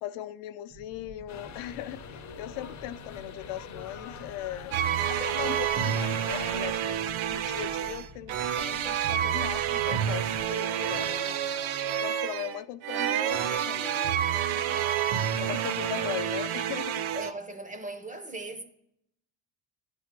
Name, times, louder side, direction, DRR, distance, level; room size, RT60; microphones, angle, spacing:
voice 1, 0.0-4.8 5.1-7.0 7.3-11.4 12.0-14.2 14.5-14.8 15.4-17.0, left 13 dB, 85° left, 0.6 m, -39 dB
sound 1, 0.7-10.5, right 2 dB, 85° right, 1.3 m, -50 dB
sound 2, 1.3-6.6, left 8 dB, 35° left, 0.5 m, -44 dB
sound 3, 4.7-17.3, right 9 dB, 70° right, 0.6 m, -29 dB
voice 2, 17.1-18.6, right 2 dB, 20° right, 0.4 m, -38 dB
10.0 x 3.5 x 5.9 m
cardioid pair, 135°, 49 cm